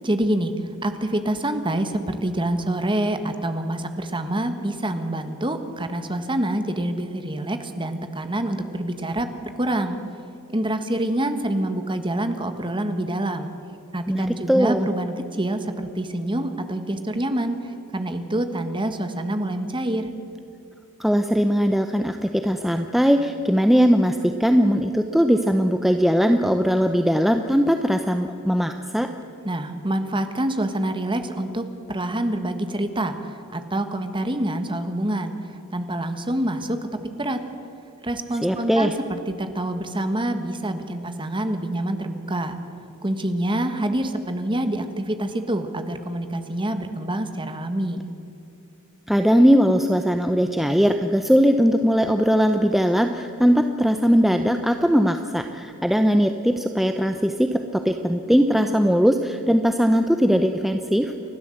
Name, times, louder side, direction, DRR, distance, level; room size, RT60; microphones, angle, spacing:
voice 1, 0.0-9.3 9.6-10.0 10.5-13.5 13.9-20.1 29.4-36.9 37.2-37.4 38.0-42.6 43.0-48.0, right 1 dB, 20° right, 8 dB, 1.5 m, -26 dB
voice 2, 14.1-14.9 21.0-29.1 38.4-39.0 49.1-61.1, equal, ahead, 6 dB, 0.7 m, -20 dB
30.0 x 12.5 x 7.8 m, 2.8 s
head